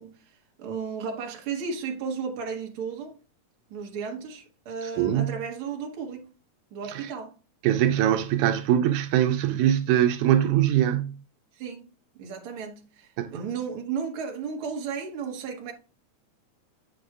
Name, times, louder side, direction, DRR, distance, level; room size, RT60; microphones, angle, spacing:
voice 1, 0.0-3.2 3.7-6.3 6.7-7.4 11.5-15.7, right 6 dB, 55° right, 1.8 m, -34 dB
voice 2, 5.0-5.3 7.6-11.2 13.2-13.3, right 11 dB, 85° right, 2.1 m, -22 dB
7.8 x 6.4 x 2.3 m
omnidirectional pair, 3.4 m